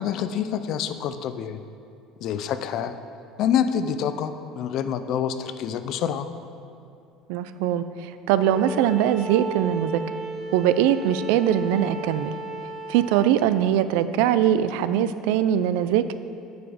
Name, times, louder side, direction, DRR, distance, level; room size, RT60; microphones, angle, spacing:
voice 1, 0.0-1.6 2.2-2.9 3.4-6.3, left 8 dB, 45° left, 10 dB, 0.3 m, -27 dB
voice 2, 7.3-10.0 10.5-12.3 12.9-16.1, right 10 dB, 80° right, 13 dB, 0.3 m, -22 dB
Bowed string instrument, 8.4-13.4, right 3 dB, 15° right, 0.8 m, -34 dB
8.9 x 4.9 x 4.8 m, 2.5 s
cardioid pair, 175°, 0 cm